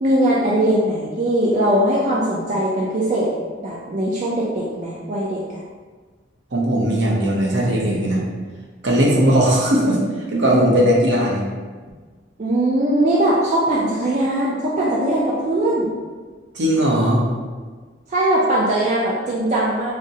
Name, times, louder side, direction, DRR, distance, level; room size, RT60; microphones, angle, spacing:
voice 1, 0.0-3.3 3.6-5.6 12.4-15.9 18.1-19.9, right 1 dB, 35° right, -6 dB, 0.3 m, -20 dB
voice 2, 6.5-8.2 8.8-10.0 10.3-11.4 16.5-17.2, equal, 65° right, -3 dB, 0.7 m, -18 dB
3.7 x 2.1 x 2.6 m, 1.4 s
head